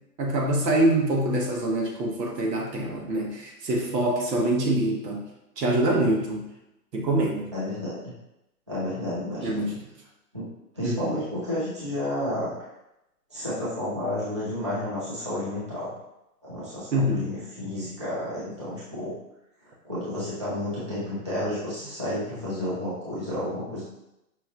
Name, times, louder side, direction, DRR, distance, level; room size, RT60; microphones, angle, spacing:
voice 1, 0.2-5.2 5.6-6.4 6.9-7.5 9.4-9.7 10.8-11.1 16.9-17.3, right 1 dB, 85° right, 0 dB, 1.2 m, -25 dB
voice 2, 7.5-8.1 8.7-9.7 10.3-10.5 10.7-12.5 13.3-15.9 16.4-19.1 19.8-23.8, left 1 dB, 20° right, -10 dB, 0.4 m, -31 dB
5.1 x 2.8 x 2.4 m, 0.88 s
hypercardioid pair, 165°, 47 cm